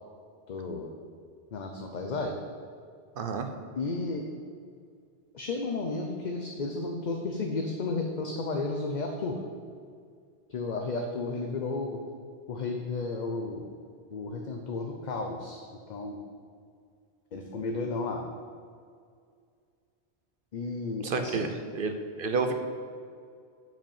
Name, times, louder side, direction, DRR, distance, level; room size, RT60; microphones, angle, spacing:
voice 1, 0.5-0.9 1.5-2.3 3.8-4.2 5.3-9.4 10.5-12.0 12.5-13.7 14.1-16.2 17.3-18.2 20.5-21.4, left 3 dB, 50° left, 3 dB, 0.7 m, -33 dB
voice 2, 3.2-3.5 21.0-21.5 21.7-21.9 22.2-22.5, right 4 dB, 60° right, 6 dB, 0.8 m, -29 dB
7.4 x 5.2 x 7.1 m, 2.2 s
omnidirectional pair, 1.1 m